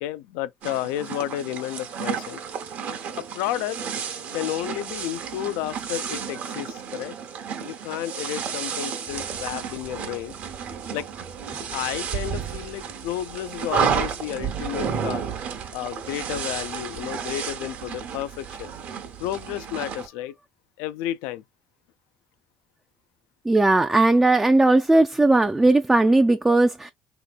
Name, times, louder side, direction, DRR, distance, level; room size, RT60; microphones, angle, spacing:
voice 1, 0.0-2.4 3.2-3.8 4.3-7.2 7.6-10.4 10.9-11.1 11.7-15.2 15.7-18.7 19.2-20.3 20.8-21.4, left 13 dB, 85° left, 0.3 m, -31 dB
sound 1, 0.6-20.1, right 7 dB, 60° right, 0.8 m, -32 dB
voice 2, 23.5-26.9, right 2 dB, 10° right, 0.3 m, -18 dB
3.2 x 2.9 x 2.3 m
supercardioid pair, 90°, 3 cm